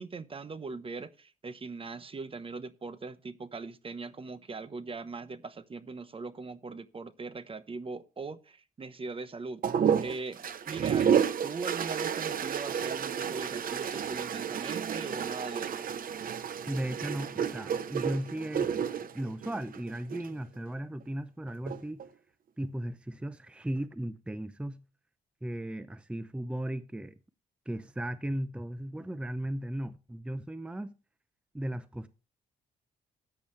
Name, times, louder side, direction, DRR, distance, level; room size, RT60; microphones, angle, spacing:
voice 1, 0.0-9.6 10.0-15.9, right 4 dB, 35° right, 0.9 m, -40 dB
sound 1, 9.6-20.3 21.5-22.1, right 8 dB, 60° right, 0.9 m, -31 dB
voice 2, 16.7-22.0 22.6-24.8 25.4-27.2 27.7-30.9 31.5-32.1, right 1 dB, 5° right, 0.6 m, -36 dB
14.0 x 8.7 x 3.2 m
cardioid pair, 85°, 17 cm